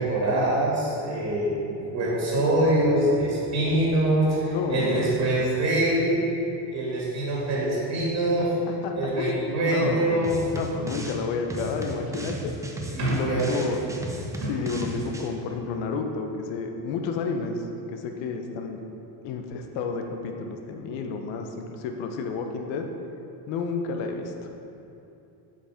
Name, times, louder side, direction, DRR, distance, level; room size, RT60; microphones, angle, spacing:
voice 1, 0.0-6.2 6.6-8.5 8.9-10.4 12.9-13.5 14.4-14.5, right 1 dB, 40° right, -6 dB, 2.0 m, -24 dB
voice 2, 4.5-5.3 8.7-10.3 10.5-12.5 13.1-13.8 14.5-17.6 17.9-18.8 19.2-22.9 23.5-24.5, left 4 dB, 80° left, 4 dB, 1.0 m, -31 dB
sound 1, 10.2-11.2 11.5-15.3, equal, 5° right, 0.5 m, -35 dB
7.6 x 5.8 x 5.0 m, 2.8 s
cardioid pair, 150°, 45 cm